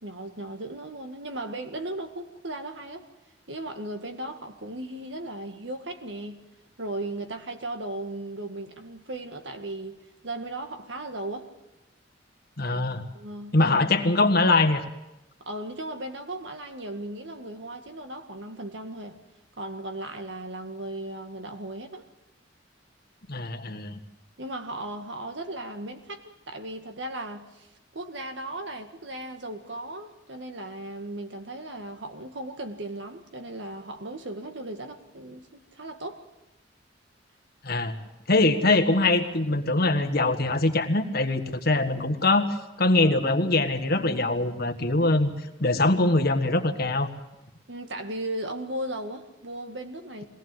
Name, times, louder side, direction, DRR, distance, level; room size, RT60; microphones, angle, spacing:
voice 1, 0.0-3.1 3.5-6.4 6.8-11.5 13.2-13.8 15.4-19.2 19.6-22.0 24.4-27.7 27.9-36.2 38.3-38.5 47.7-50.2, right 1 dB, 75° right, 1.9 m, -36 dB
voice 2, 12.6-13.0 13.5-14.8 23.3-24.0 37.6-37.9 38.3-45.3 45.6-47.1, left 2 dB, 55° left, 1.6 m, -23 dB
22.5 x 18.0 x 7.8 m
head